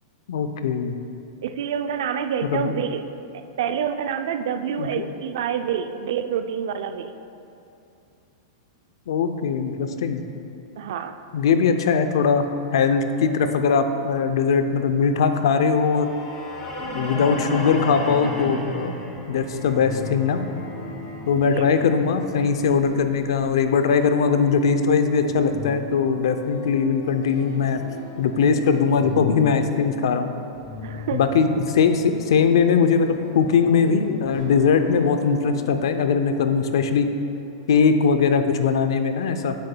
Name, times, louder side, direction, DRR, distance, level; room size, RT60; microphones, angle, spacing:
voice 1, 0.3-1.0 2.5-2.7 4.8-5.0 9.1-10.2 11.3-12.5 12.7-16.1 16.9-19.0 19.3-20.4 21.3-27.8 28.2-30.3 31.1-37.1 37.7-39.5, left 5 dB, 75° left, 8 dB, 0.5 m, -20 dB
voice 2, 1.4-3.0 3.6-7.1 10.8-11.2 21.5-21.7 30.8-31.4, right 8 dB, 65° right, 9 dB, 0.4 m, -27 dB
sound 1, 15.8-23.8, left 1 dB, 25° left, 1.4 m, -33 dB
sound 2, 19.5-37.7, left 3 dB, 40° left, 1.7 m, -39 dB
9.6 x 7.9 x 2.3 m, 2.7 s
supercardioid pair, 160°, 3 cm